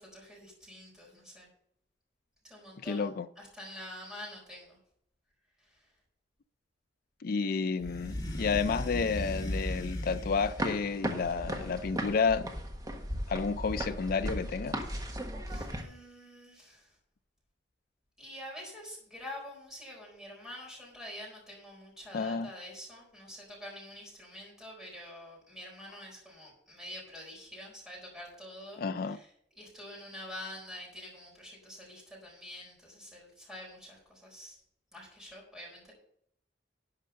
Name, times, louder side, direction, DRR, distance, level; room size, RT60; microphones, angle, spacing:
voice 1, 0.0-1.5 2.4-3.1 3.4-4.8 15.4-16.9 18.2-29.3 29.6-34.6 34.9-35.9, left 1 dB, ahead, 4.3 m, -47 dB
voice 2, 2.8-3.3 7.2-12.5 13.3-14.7 22.1-22.5 28.8-29.2, left 5 dB, 55° left, 0.4 m, -31 dB
sound 1, 7.8-10.8 11.4-12.3, left 1 dB, 20° left, 2.2 m, -37 dB
sound 2, 10.4-15.8, equal, 20° right, 1.3 m, -36 dB
11.5 x 5.5 x 6.8 m
head